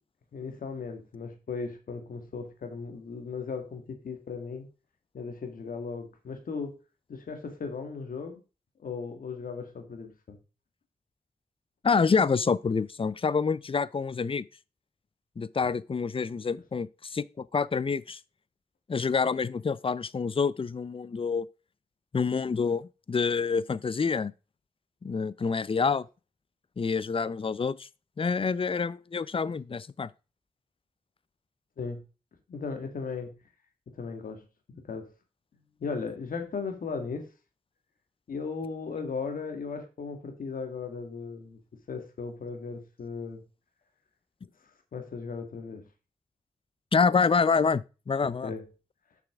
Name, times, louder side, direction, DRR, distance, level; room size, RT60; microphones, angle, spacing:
voice 1, 0.3-4.7 5.1-6.8 7.1-8.4 8.8-10.4 31.8-32.0 32.5-33.3 33.9-34.4 34.9-35.1 35.8-37.3 38.3-41.6 41.9-43.4 44.9-45.8 48.2-48.6, left 5 dB, 80° left, 1.7 m, -37 dB
voice 2, 11.8-14.4 15.4-18.2 18.9-21.5 22.1-24.3 25.0-26.0 26.8-27.9 28.2-30.1 46.9-48.5, left 5 dB, 40° left, 0.5 m, -27 dB
6.9 x 6.0 x 3.5 m
cardioid pair, 50°, 14 cm